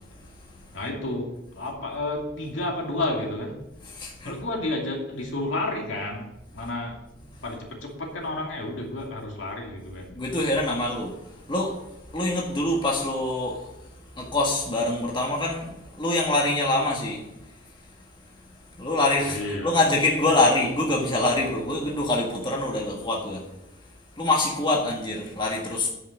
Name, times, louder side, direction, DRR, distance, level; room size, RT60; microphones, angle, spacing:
voice 1, 0.7-3.6 4.2-6.3 6.5-7.0 7.4-10.1 19.3-19.7, left 2 dB, 65° left, 2.6 m, -31 dB
voice 2, 3.8-4.4 10.1-11.1 11.5-11.8 12.1-13.7 14.2-17.2 18.8-23.4 24.2-25.9, left 2 dB, 25° left, 1.5 m, -25 dB
9.6 x 5.6 x 7.4 m
head